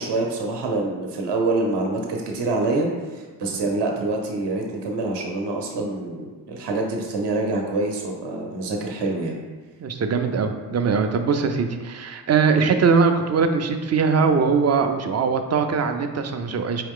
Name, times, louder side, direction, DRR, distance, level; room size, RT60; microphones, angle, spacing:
voice 1, 0.0-9.4, right 2 dB, 70° right, 1 dB, 0.8 m, -26 dB
voice 2, 9.8-16.8, right 5 dB, 40° right, 7 dB, 0.5 m, -21 dB
4.6 x 3.1 x 3.6 m, 1.4 s
cardioid pair, 90°, 42 cm